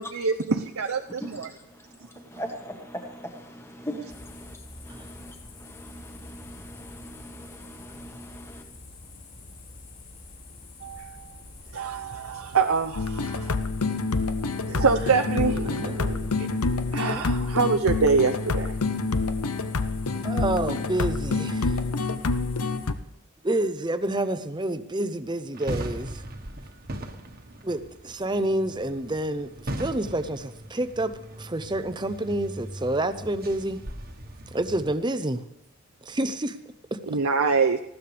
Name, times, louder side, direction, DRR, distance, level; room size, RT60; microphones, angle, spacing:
voice 1, 0.0-1.5 10.8-11.2 11.7-13.5 14.7-16.2 16.9-18.7 37.1-37.8, right 4 dB, 70° right, 4 dB, 0.7 m, -25 dB
voice 2, 2.3-4.6 4.8-5.3 5.6-8.6, equal, 10° left, 3 dB, 1.4 m, -40 dB
sound 1, 4.1-22.9, left 2 dB, 35° left, 4.7 m, -46 dB
sound 2, 13.0-22.9, left 3 dB, 85° left, 0.8 m, -27 dB
voice 3, 15.7-16.1 17.1-17.3 20.2-21.8 23.4-26.2 27.6-29.5 29.8-33.8 34.5-35.4 36.0-36.6 36.9-37.0, right 1 dB, 20° right, 11 dB, 0.7 m, -28 dB
sound 3, 25.5-34.9, right 1 dB, 40° right, 1.3 m, -39 dB
19.0 x 15.5 x 3.4 m, 0.86 s
head